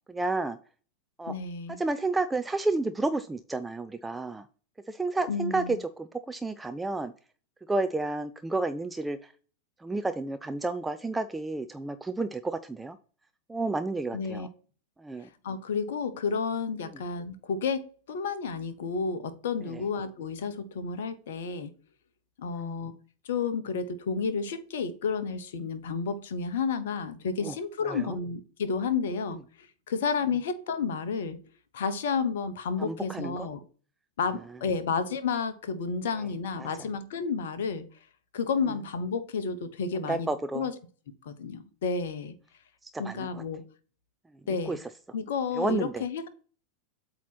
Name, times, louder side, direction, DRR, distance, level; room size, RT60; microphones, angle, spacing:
voice 1, 0.1-0.6 1.2-1.3 1.7-4.4 4.9-7.1 7.7-9.3 9.8-13.0 13.5-14.5 15.0-15.3 19.7-19.8 22.4-22.8 27.4-27.6 27.8-28.2 32.8-33.5 36.6-36.7 40.1-40.7 43.0-43.4 44.7-44.9 45.6-46.0, right 3 dB, 10° right, 0.4 m, -31 dB
voice 2, 1.3-1.8 5.3-5.8 14.1-14.5 15.4-17.8 18.1-21.7 22.4-22.9 23.2-31.4 31.7-33.6 34.2-37.9 38.3-40.7 41.2-42.3 43.0-43.6 44.5-44.8 45.1-46.3, left 5 dB, 60° left, 0.7 m, -31 dB
8.1 x 2.9 x 6.0 m
figure-of-eight pair, 90°, 0 cm